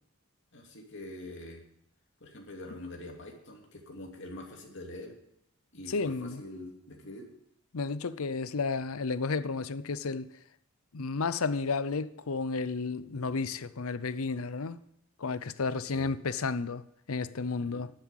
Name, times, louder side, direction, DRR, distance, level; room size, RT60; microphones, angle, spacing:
voice 1, 0.5-1.6 2.2-5.2 5.7-7.3 15.9-16.1 17.6-17.8, left 1 dB, 55° left, 2.9 m, -44 dB
voice 2, 5.9-6.4 7.7-10.3 10.9-14.8 15.2-17.9, left 4 dB, 70° left, 0.7 m, -32 dB
12.0 x 7.6 x 9.1 m
head